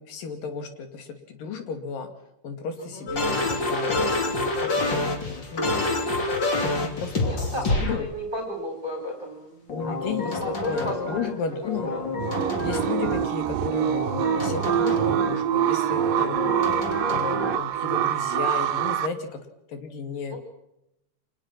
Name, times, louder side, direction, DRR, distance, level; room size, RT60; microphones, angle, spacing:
voice 1, 0.0-2.1 2.4-6.2 6.8-8.1 9.7-10.4 10.7-11.9 12.6-14.0 14.3-16.4 17.0-19.4 19.7-20.4, left 5 dB, 80° left, 7 dB, 4.2 m, -34 dB
sound 1, 3.1-8.0 9.7-11.4 11.6-13.3 13.7-15.5 16.0-17.6, left 2 dB, 35° left, 3.5 m, -28 dB
voice 2, 7.2-10.1 10.4-12.2 17.2-17.5 20.3-20.4, left 1 dB, 15° right, 0 dB, 4.4 m, -34 dB
sound 2, 12.2-19.1, right 11 dB, 85° right, 2.6 m, -25 dB
26.5 x 19.5 x 6.0 m, 0.84 s
omnidirectional pair, 3.9 m